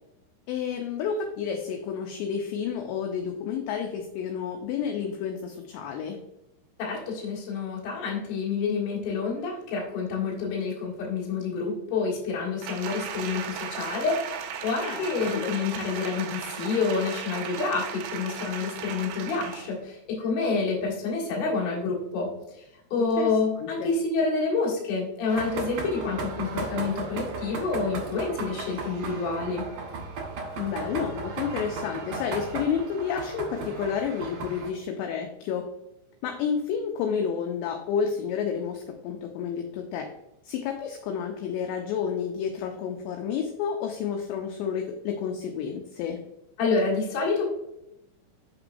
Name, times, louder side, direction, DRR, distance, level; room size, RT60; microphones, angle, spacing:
voice 1, 0.5-6.2 14.8-15.5 23.0-23.3 23.6-23.9 30.6-35.6 36.2-40.1 40.4-46.2, left 7 dB, 85° left, 4 dB, 2.5 m, -30 dB
voice 2, 6.8-22.3 22.9-29.7 46.6-47.4, left 4 dB, 60° left, -4 dB, 1.9 m, -28 dB
Applause, 12.6-19.8 20.2-20.3, right 8 dB, 85° right, 2.4 m, -36 dB
sound 1, 25.3-34.7, right 4 dB, 70° right, 2.0 m, -35 dB
6.2 x 5.8 x 2.6 m, 0.87 s
omnidirectional pair, 5.5 m